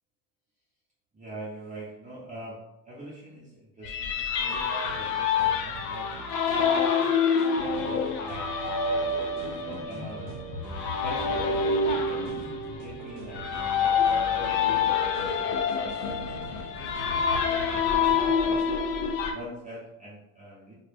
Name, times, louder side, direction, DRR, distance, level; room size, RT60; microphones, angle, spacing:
voice 1, 1.1-2.6 2.8-6.3 6.5-7.1 7.6-8.6 9.5-10.2 11.0-16.3 16.8-18.7 19.3-20.7, right 1 dB, 15° right, -7 dB, 0.6 m, -44 dB
sound 1, 3.8-19.3, left 5 dB, 90° left, 0.6 m, -27 dB
sound 2, 4.5-18.7, right 3 dB, 75° right, 0.6 m, -45 dB
2.2 x 2.0 x 3.2 m, 0.89 s
supercardioid pair, 95°, 47 cm